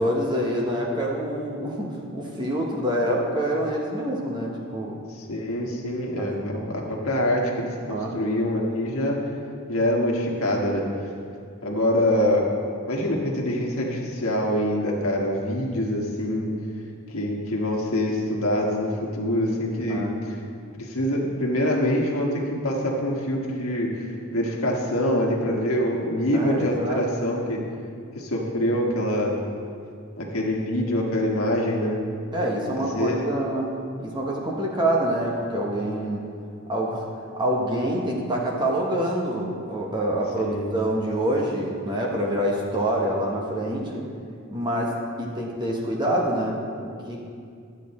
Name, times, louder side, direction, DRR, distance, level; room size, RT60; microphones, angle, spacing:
voice 1, 0.0-5.0 6.2-6.8 7.9-8.1 19.9-20.1 26.3-27.0 32.3-36.2 36.7-37.1 37.3-44.0 44.5-44.9 45.2-47.4, right 1 dB, 20° right, -3 dB, 1.0 m, -26 dB
voice 2, 5.2-9.2 9.7-10.8 11.6-12.4 12.9-16.5 17.1-20.4 20.8-27.6 28.1-29.4 30.2-32.0 32.9-33.2 40.4-40.7, left 1 dB, 70° left, -2 dB, 1.4 m, -25 dB
11.5 x 8.3 x 4.2 m, 2.3 s
head